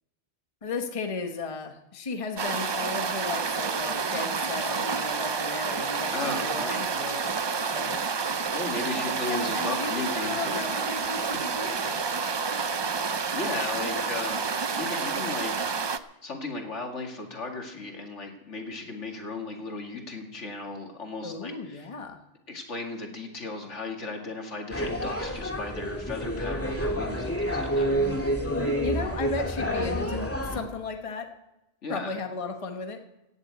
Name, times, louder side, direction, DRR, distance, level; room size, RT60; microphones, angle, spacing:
voice 1, 0.6-8.0 9.3-12.0 13.8-14.1 21.2-22.2 28.8-31.3 31.9-33.0, left 4 dB, 30° left, 5 dB, 1.1 m, -35 dB
sound 1, 2.4-16.0, right 5 dB, 45° right, 0.3 m, -29 dB
voice 2, 6.1-6.9 8.5-11.1 12.5-12.8 13.3-14.4 14.7-15.7 16.2-21.9 22.5-27.9 31.8-32.2, left 3 dB, 80° left, 2 dB, 2.4 m, -36 dB
sound 2, 24.7-30.6, equal, 10° left, 1.9 m, -28 dB
16.5 x 7.2 x 8.2 m, 0.95 s
omnidirectional pair, 1.2 m